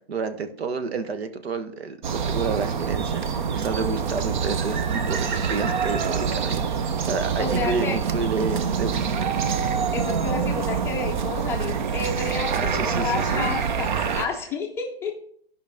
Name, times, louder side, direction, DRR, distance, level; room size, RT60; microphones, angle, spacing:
voice 1, 0.1-3.2 3.5-9.2 12.5-13.5, right 4 dB, 80° right, 9 dB, 1.3 m, -30 dB
sound 1, 2.0-14.3, right 6 dB, 50° right, 0.8 m, -26 dB
voice 2, 7.4-8.0 9.9-15.2, left 4 dB, 10° left, 0 dB, 0.5 m, -30 dB
14.5 x 5.2 x 3.5 m, 0.62 s
hypercardioid pair, 150°, 31 cm